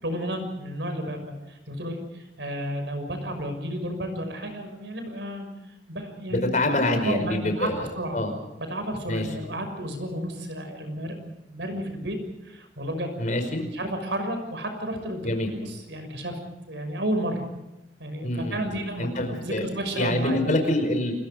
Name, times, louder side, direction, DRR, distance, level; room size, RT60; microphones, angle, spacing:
voice 1, 0.0-5.5 5.9-6.5 6.9-8.2 8.6-12.2 12.4-13.1 13.7-16.4 16.7-17.5 18.0-20.4, right 1 dB, 80° right, 7 dB, 6.3 m, -32 dB
voice 2, 6.3-7.9 8.1-8.3 9.1-9.3 13.2-13.6 15.2-15.5 18.2-18.6 19.0-19.7 19.9-21.1, left 1 dB, 45° left, 5 dB, 5.1 m, -25 dB
29.5 x 22.0 x 5.2 m, 0.94 s
head